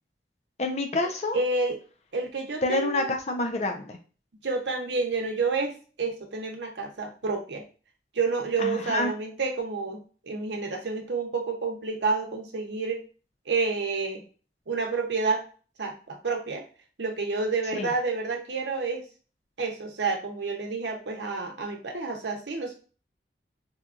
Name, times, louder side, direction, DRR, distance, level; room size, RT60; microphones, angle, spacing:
voice 1, 0.6-1.4 2.6-4.0 8.6-9.1 17.7-17.9, left 2 dB, 40° left, 4 dB, 0.5 m, -28 dB
voice 2, 1.3-1.8 2.1-3.1 4.4-7.6 8.1-10.0 10.3-13.0 13.5-14.2 14.7-15.4 15.8-16.6 17.0-19.0 19.6-22.8, right 4 dB, 80° right, 2 dB, 0.8 m, -29 dB
4.2 x 2.3 x 2.4 m, 0.37 s
head